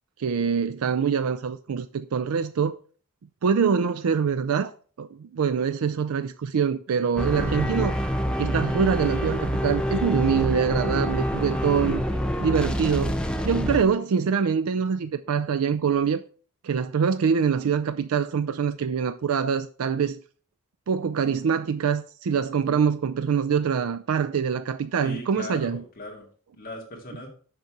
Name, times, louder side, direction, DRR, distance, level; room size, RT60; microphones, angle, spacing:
voice 1, 0.2-2.8 3.4-4.7 5.0-8.0 8.4-12.0 12.4-13.2 13.4-16.2 16.6-20.2 20.9-25.8, right 6 dB, 80° right, 0.4 m, -24 dB
sound 1, 7.2-13.8, equal, 5° left, 0.6 m, -26 dB
voice 2, 25.0-26.3 26.5-27.3, left 1 dB, 40° left, 2.1 m, -38 dB
6.7 x 5.7 x 4.7 m
head